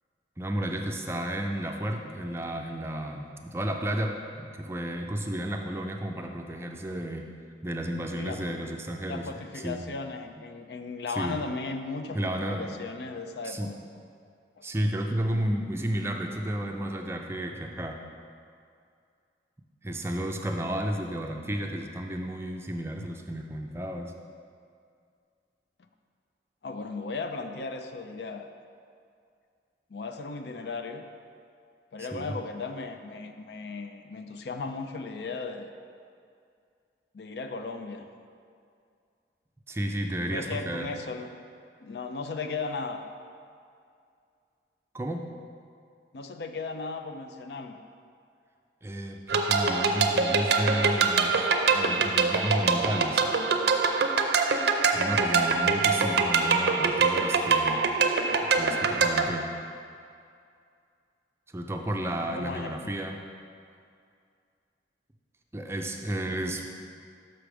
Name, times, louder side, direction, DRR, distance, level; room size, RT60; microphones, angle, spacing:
voice 1, 0.4-7.3 7.6-9.3 9.6-9.8 11.2-11.4 12.1-12.7 13.4-13.7 14.6-18.0 19.8-24.1 32.0-32.3 39.7-40.9 44.9-45.2 48.8-53.2 54.9-57.8 58.5-59.5 61.5-63.2 65.5-66.6, right 1 dB, 15° right, 2 dB, 0.4 m, -32 dB
voice 2, 8.2-8.8 9.1-13.8 14.6-14.7 26.6-28.5 29.9-31.1 31.9-35.7 37.1-38.1 40.2-41.3 41.8-43.0 46.1-47.8 62.3-62.9, left 4 dB, 65° left, 7 dB, 0.5 m, -36 dB
sound 1, 49.3-59.3, right 4 dB, 65° right, 0.5 m, -24 dB
5.9 x 5.0 x 6.1 m, 2.3 s
head